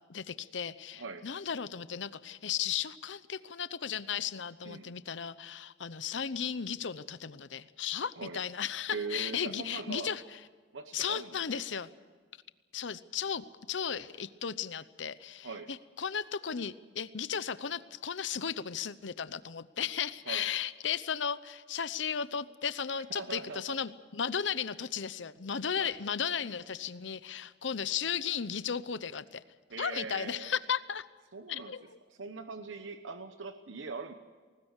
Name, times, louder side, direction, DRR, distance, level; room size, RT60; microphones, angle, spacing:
voice 1, 0.1-10.4 10.9-11.9 12.7-29.4 29.8-31.0 31.5-32.0, left 7 dB, 70° left, 15 dB, 0.8 m, -35 dB
voice 2, 4.6-5.0 8.2-8.4 8.9-10.1 10.7-11.6 15.4-15.7 20.3-20.5 23.1-23.8 25.8-25.9 29.7-30.5 31.3-31.7 32.2-34.1, right 4 dB, 80° right, 8 dB, 1.0 m, -41 dB
20.5 x 19.5 x 8.1 m, 1.5 s
head